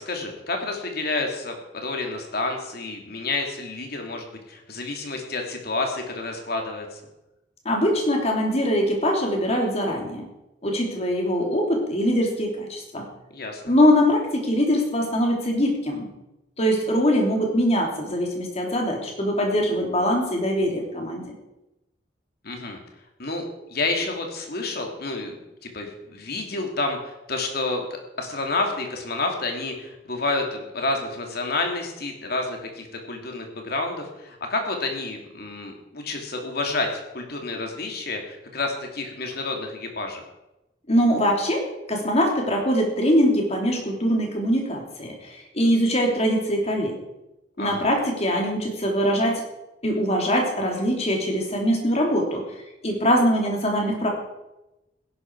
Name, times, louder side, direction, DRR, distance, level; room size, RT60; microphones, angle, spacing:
voice 1, 0.0-7.0 13.3-13.7 22.4-22.8 23.2-23.4 23.7-25.4 25.6-27.9 28.2-40.2 47.6-47.9, left 3 dB, 60° left, 3 dB, 2.8 m, -29 dB
voice 2, 7.6-10.3 10.6-13.1 13.7-16.1 16.6-21.3 40.9-47.0 47.6-49.4 49.8-52.4 52.8-54.1, equal, 35° left, 1 dB, 3.3 m, -22 dB
16.5 x 11.5 x 4.8 m, 0.95 s
head